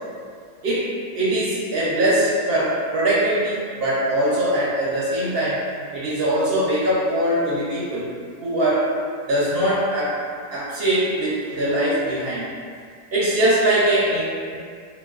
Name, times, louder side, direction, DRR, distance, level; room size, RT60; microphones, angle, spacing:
voice 1, 0.6-5.6 5.9-8.1 8.4-8.9 9.3-10.2 10.5-12.5 13.1-14.6, right 1 dB, 60° right, -7 dB, 0.7 m, -22 dB
3.9 x 2.2 x 2.3 m, 2.1 s
omnidirectional pair, 1.5 m